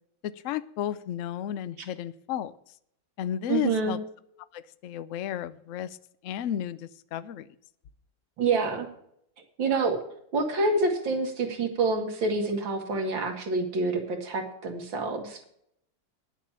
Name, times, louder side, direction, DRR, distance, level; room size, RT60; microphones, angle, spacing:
voice 1, 0.2-2.5 3.2-4.0 4.5-6.0 6.2-7.5, left 11 dB, 75° left, 15 dB, 0.7 m, -33 dB
voice 2, 3.5-4.0 8.4-8.9 9.6-10.0 10.3-15.4, right 3 dB, 80° right, 4 dB, 2.5 m, -27 dB
10.5 x 7.4 x 7.3 m, 0.71 s
omnidirectional pair, 2.1 m